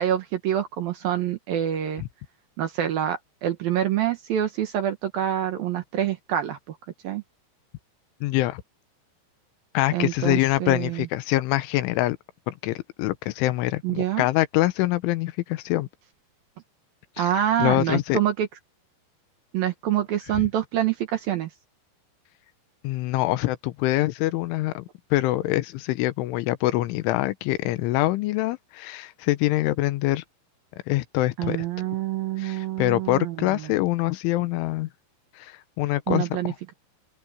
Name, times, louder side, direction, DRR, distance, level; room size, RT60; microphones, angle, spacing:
voice 1, 0.0-2.0 2.6-6.8 7.0-7.2 9.9-11.1 13.8-14.3 17.2-18.5 19.5-21.5 31.4-33.7 36.1-36.7, right 11 dB, 65° right, 2.5 m, -26 dB
voice 2, 8.2-8.6 9.7-12.2 12.5-15.9 17.2-17.3 17.6-18.2 22.8-24.8 25.1-30.2 30.9-31.9 32.4-34.9 35.4-36.3, left 17 dB, 85° left, 3.4 m, -25 dB
open air
omnidirectional pair, 5.5 m